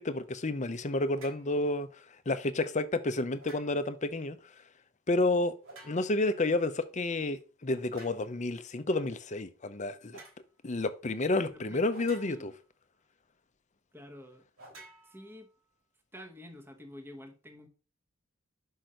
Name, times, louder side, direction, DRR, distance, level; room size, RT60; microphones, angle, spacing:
voice 1, 0.0-1.9 2.3-4.4 5.1-5.5 5.8-10.2 10.6-12.5, left 2 dB, 35° left, 0.7 m, -30 dB
sound 1, 1.1-1.5 3.4-4.0 5.6-6.3 7.9-8.3 10.1-10.4 11.9-12.7 14.6-15.7, right 2 dB, 90° right, 3.1 m, -52 dB
voice 2, 11.5-11.8 12.2-12.5 13.9-14.4 15.1-15.5 16.1-17.7, equal, 10° right, 1.1 m, -48 dB
6.1 x 5.6 x 5.0 m
head